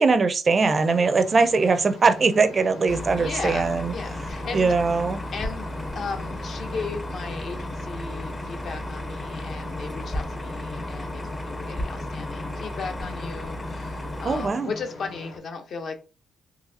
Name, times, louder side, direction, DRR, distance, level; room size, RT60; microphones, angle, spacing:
voice 1, 0.0-3.9 4.5-5.2 14.2-14.7, right 4 dB, 35° right, 0.4 m, -21 dB
sound 1, 0.5-15.4, left 2 dB, 85° left, 1.0 m, -42 dB
voice 2, 2.9-4.7 5.3-5.7 5.9-16.0, left 5 dB, 60° left, 0.7 m, -36 dB
sound 2, 2.9-14.5, left 1 dB, 20° left, 0.5 m, -34 dB
sound 3, 5.4-7.6 7.9-13.7, equal, 40° left, 1.0 m, -39 dB
4.0 x 2.7 x 2.7 m
cardioid pair, 90°, 0 cm